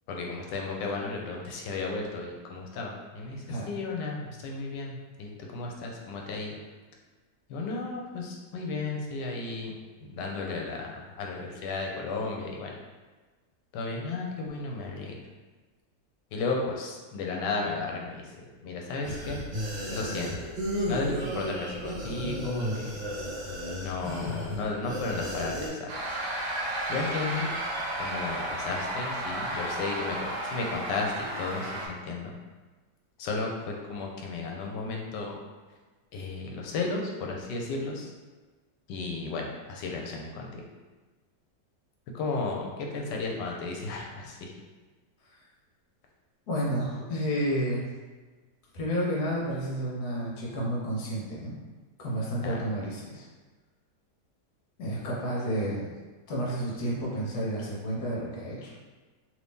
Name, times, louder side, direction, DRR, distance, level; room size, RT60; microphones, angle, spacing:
voice 1, 0.1-6.6 7.5-9.7 10.1-12.7 13.7-15.1 16.3-18.3 18.6-19.4 19.9-20.4 20.9-23.0 23.8-26.2 26.9-27.5 28.0-32.3 33.2-35.4 36.1-38.1 38.9-40.6 42.1-44.5 52.4-52.6, left 3 dB, 85° left, 0 dB, 1.3 m, -34 dB
sound 1, 19.0-25.7, equal, 35° right, 0.9 m, -34 dB
sound 2, 25.9-31.9, right 1 dB, 60° right, 0.9 m, -33 dB
voice 2, 46.5-47.8 48.7-51.5 52.0-53.2 54.8-55.9 56.3-58.7, equal, 70° left, -5 dB, 1.3 m, -31 dB
2.9 x 2.7 x 3.5 m, 1.3 s
omnidirectional pair, 1.8 m